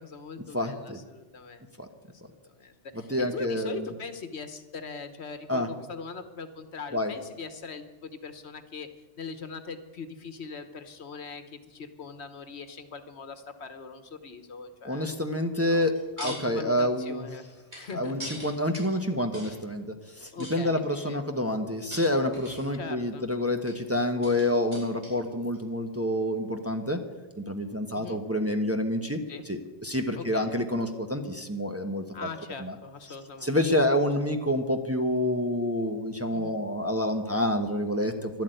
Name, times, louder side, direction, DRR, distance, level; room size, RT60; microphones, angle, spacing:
voice 1, 0.0-1.7 2.1-8.9 9.2-15.1 15.7-15.8 16.2-17.5 17.8-18.2 20.3-21.2 22.7-23.3 27.9-28.2 29.3-29.4 30.1-30.5 32.1-33.6 36.3-36.6, left 5 dB, 75° left, 9 dB, 1.4 m, -41 dB
voice 2, 0.5-1.0 1.8-1.9 3.1-3.9 5.5-5.7 6.9-7.1 14.8-15.9 16.2-17.2 17.9-19.9 20.1-27.0 27.4-29.2 29.5-32.3 32.6-32.7 33.4-38.4, left 1 dB, 15° right, 4 dB, 1.0 m, -28 dB
sound 1, 15.8-16.4 16.8-19.6 20.4-21.1 21.8-22.9 23.7-25.3 25.5-25.6, right 1 dB, 45° right, 6.5 m, -43 dB
12.0 x 12.0 x 9.1 m, 1.2 s
omnidirectional pair, 1.1 m